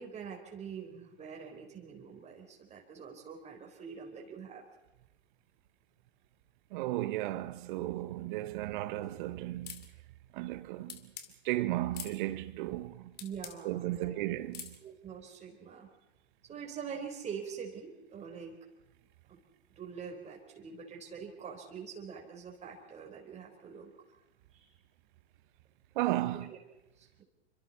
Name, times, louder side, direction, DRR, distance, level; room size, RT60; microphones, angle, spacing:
voice 1, 0.0-4.6 13.2-14.2 14.8-15.9 16.4-18.6 19.3-19.4 19.8-23.9 24.5-24.7 26.2-26.6 27.0-27.2, right 6 dB, 20° right, 4.3 m, -45 dB
voice 2, 6.7-9.8 10.3-11.0 11.4-13.1 13.6-14.7 25.9-26.5, right 16 dB, 45° right, 1.5 m, -34 dB
sound 1, 9.7-9.9 10.9-11.3 11.9-12.2 13.2-13.6 14.5-14.8, left 9 dB, 30° left, 2.5 m, -44 dB
28.0 x 25.0 x 4.3 m
figure-of-eight pair, 105°, 33 cm